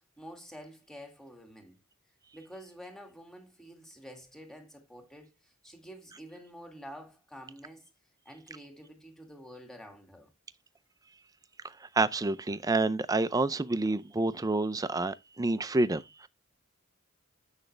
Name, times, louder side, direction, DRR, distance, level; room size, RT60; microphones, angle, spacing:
voice 1, 0.0-1.8 2.3-7.9 8.3-10.3, equal, ahead, 2.1 m, -49 dB
voice 2, 11.8-16.3, right 2 dB, 15° right, 0.5 m, -28 dB
8.0 x 6.3 x 3.2 m
head